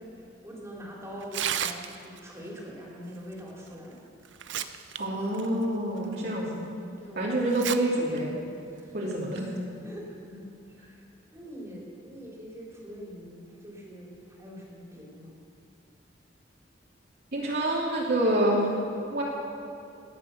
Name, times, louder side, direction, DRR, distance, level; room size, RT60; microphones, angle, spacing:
voice 1, 0.0-4.0 7.0-7.5 8.7-8.9 9.8-11.0 11.3-15.3, equal, 15° right, -3 dB, 3.4 m, -43 dB
Tearing, 1.2-2.2 3.7-3.8 4.2-5.0 5.3-5.5 6.1-6.2 7.5-7.8 8.2-8.3 9.1-9.4, right 9 dB, 85° right, 0.7 m, -32 dB
voice 2, 5.0-6.6 7.1-8.3 8.9-9.5 17.3-18.7 19.1-19.2, right 1 dB, 60° right, -5 dB, 3.0 m, -27 dB
18.5 x 9.1 x 6.9 m, 2.7 s
head